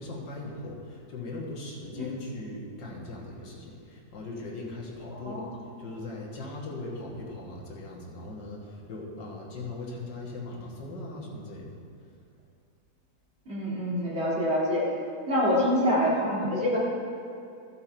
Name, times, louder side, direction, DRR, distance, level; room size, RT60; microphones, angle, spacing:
voice 1, 0.0-5.4 5.8-11.7, left 2 dB, 85° left, -3 dB, 2.1 m, -39 dB
voice 2, 5.1-5.5 13.5-14.9 15.3-16.8, equal, 35° right, -6 dB, 2.3 m, -26 dB
13.5 x 6.7 x 4.4 m, 2.4 s
omnidirectional pair, 1.9 m